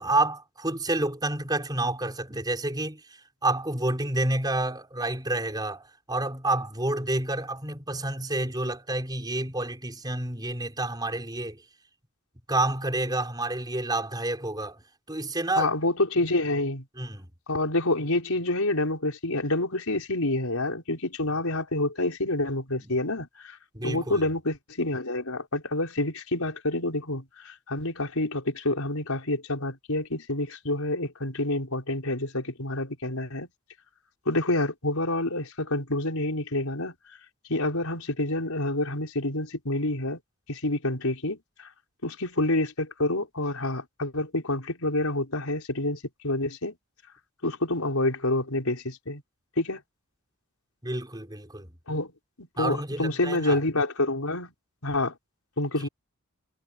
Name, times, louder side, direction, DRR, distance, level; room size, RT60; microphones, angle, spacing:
voice 1, 0.0-3.0 3.4-11.6 12.5-14.8 15.1-15.7 17.0-17.3 22.8-22.9 23.7-24.3 50.8-51.7 52.6-53.6, right 2 dB, 20° right, 4.8 m, -29 dB
voice 2, 15.6-16.8 17.5-23.6 23.8-33.5 34.2-37.0 37.5-40.2 40.5-41.7 42.0-46.7 47.4-49.2 49.6-49.8 51.9-52.1 52.4-54.5 54.8-55.1 55.6-55.9, left 2 dB, 90° left, 4.8 m, -28 dB
head